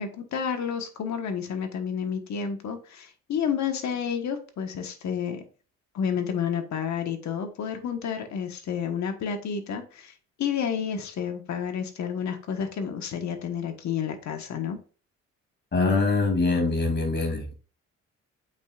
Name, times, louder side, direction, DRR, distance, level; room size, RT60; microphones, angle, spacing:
voice 1, 0.0-5.4 5.9-10.1 10.4-14.8, left 7 dB, 65° left, 1.3 m, -30 dB
voice 2, 15.7-17.5, left 3 dB, 35° left, 2.6 m, -24 dB
8.2 x 4.9 x 2.4 m
cardioid pair, 90°, 30 cm